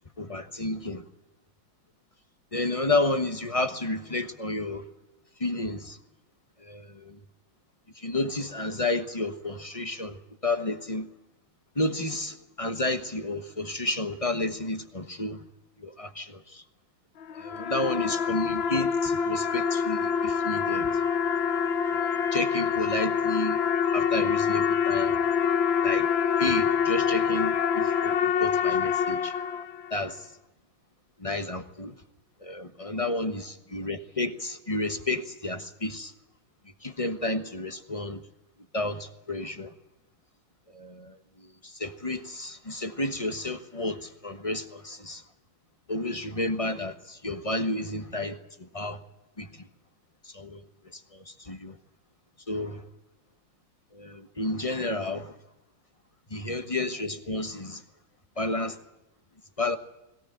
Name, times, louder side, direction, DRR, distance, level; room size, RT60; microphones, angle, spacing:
voice 1, 0.2-1.0 2.5-4.8 5.4-6.0 6.6-7.2 8.0-10.2 10.4-11.1 11.8-15.4 15.8-16.6 17.4-21.0 21.9-23.6 23.9-25.2 25.8-26.1 26.4-29.3 29.9-30.3 31.2-31.9 32.4-36.1 36.8-38.2 38.7-39.7 40.7-41.1 41.6-45.2 45.9-49.0 49.4-49.5 50.2-50.6 50.9-51.0 51.3-51.7 52.5-52.8 53.9-55.3 56.3-57.8 58.4-58.8 59.6-59.8, left 2 dB, 20° left, 1.1 m, -31 dB
sound 1, 17.2-30.0, left 7 dB, 70° left, 1.8 m, -26 dB
22.0 x 17.0 x 9.2 m
omnidirectional pair, 2.2 m